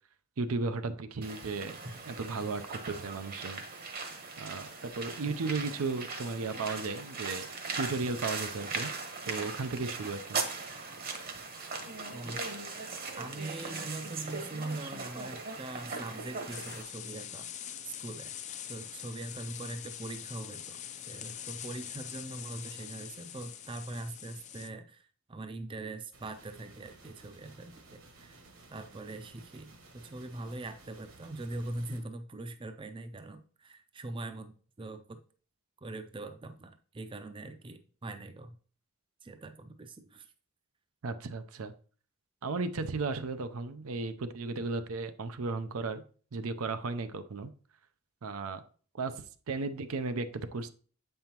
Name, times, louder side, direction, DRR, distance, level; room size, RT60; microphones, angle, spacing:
voice 1, 0.4-1.8 2.0-3.6 4.4-7.5 7.8-8.9 9.2-10.4 41.0-41.7 42.4-46.0 46.3-47.5 48.2-48.6 48.9-50.7, right 3 dB, 85° right, 10 dB, 0.6 m, -35 dB
sound 1, 1.2-16.8, right 4 dB, 45° right, 1.0 m, -39 dB
voice 2, 13.2-17.5 17.8-18.3 18.7-20.8 21.1-28.4 28.7-35.2 35.8-38.6 39.2-40.3, right 2 dB, 25° right, 9 dB, 0.4 m, -42 dB
sound 2, 16.5-24.7, left 10 dB, 35° left, 0.4 m, -44 dB
sound 3, 26.1-32.0, right 2 dB, 65° right, 1.4 m, -56 dB
7.8 x 5.5 x 2.9 m, 0.42 s
head